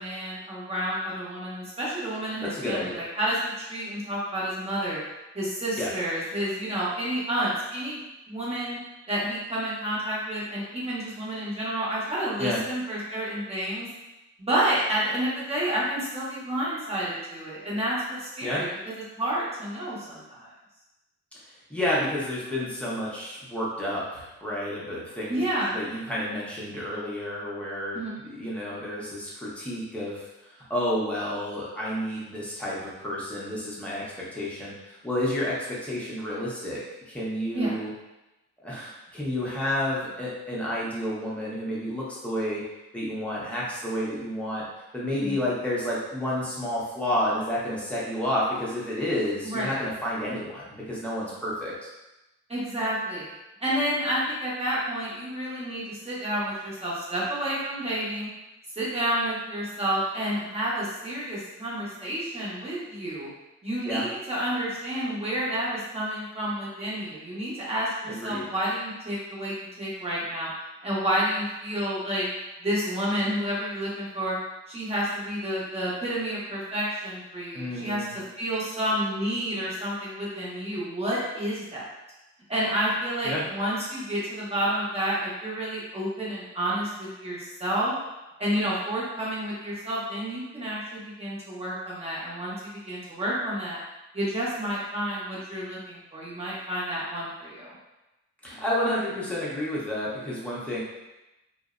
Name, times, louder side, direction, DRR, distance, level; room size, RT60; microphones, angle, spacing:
voice 1, 0.0-5.0 5.3-8.0 8.3-8.8 9.1-13.9 14.4-18.7 19.1-20.5 25.3-25.8 27.9-28.2 37.5-37.7 45.2-45.4 49.4-49.7 52.5-53.3 53.6-58.3 58.7-63.3 63.6-70.5 70.8-72.2 72.6-74.3 74.7-78.0 78.4-81.9 82.5-88.0 88.4-93.8 94.1-97.7, right 1 dB, 20° right, -8 dB, 1.0 m, -30 dB
voice 2, 2.4-3.0 5.8-5.9 12.4-12.6 18.4-18.6 21.7-25.4 25.7-30.3 30.5-37.9 38.6-42.6 42.9-44.6 44.9-51.9 63.8-64.0 68.1-68.4 77.5-78.1 83.2-83.4 98.4-100.8, left 1 dB, 5° left, -7 dB, 0.8 m, -30 dB
2.5 x 2.1 x 2.5 m, 0.98 s
cardioid pair, 90°, 30 cm